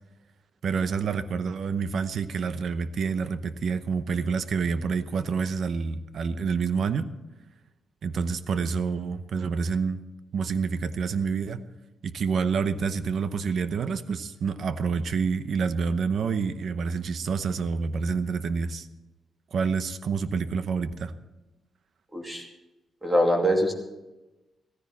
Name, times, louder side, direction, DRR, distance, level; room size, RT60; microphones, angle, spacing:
voice 1, 0.6-7.1 8.0-10.0 10.3-11.6 12.0-18.9 19.5-21.1, right 5 dB, 60° right, 12 dB, 0.8 m, -28 dB
voice 2, 22.1-22.5 23.0-23.7, equal, 10° right, 1 dB, 2.6 m, -23 dB
16.5 x 14.5 x 4.2 m, 1.0 s
cardioid pair, 135°, 0 cm